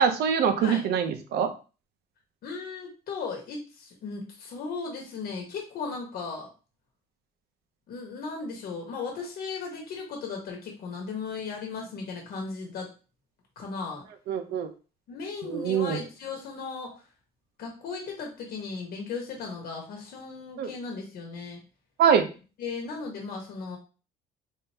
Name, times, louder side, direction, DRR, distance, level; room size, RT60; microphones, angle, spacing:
voice 1, 0.0-1.5 14.3-14.7 15.4-16.0 20.6-20.7 22.0-22.3, right 7 dB, 75° right, 9 dB, 0.7 m, -24 dB
voice 2, 2.4-6.5 7.9-12.9 13.6-14.0 15.1-17.0 17.6-21.6 22.6-23.8, left 4 dB, 65° left, 1 dB, 1.1 m, -36 dB
3.7 x 3.3 x 2.8 m, 0.34 s
cardioid pair, 110°, 17 cm